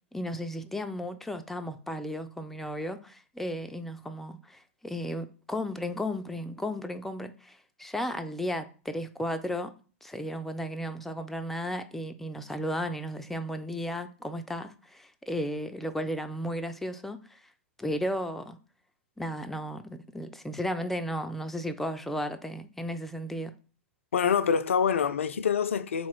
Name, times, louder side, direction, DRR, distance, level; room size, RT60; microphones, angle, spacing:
voice 1, 0.1-9.7 10.0-17.4 17.8-18.6 19.2-23.5, equal, 5° left, 0.4 m, -34 dB
voice 2, 24.1-26.1, left 7 dB, 70° left, 0.4 m, -26 dB
3.9 x 2.9 x 4.5 m
figure-of-eight pair, 100°, 7 cm